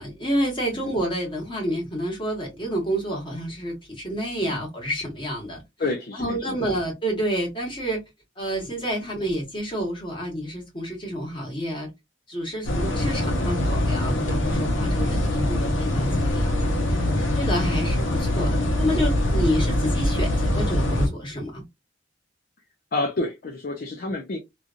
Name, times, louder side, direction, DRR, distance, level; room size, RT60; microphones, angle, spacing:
voice 1, 0.0-5.6 6.1-8.0 8.4-11.9 12.3-16.7 17.2-21.6, equal, 25° left, 1.5 m, -29 dB
voice 2, 5.8-6.8 12.7-12.8 15.0-15.2 17.1-17.2 22.9-24.4, left 2 dB, 50° left, 0.5 m, -29 dB
sound 1, 12.7-21.1, left 1 dB, 85° left, 0.9 m, -23 dB
3.1 x 2.5 x 2.4 m
head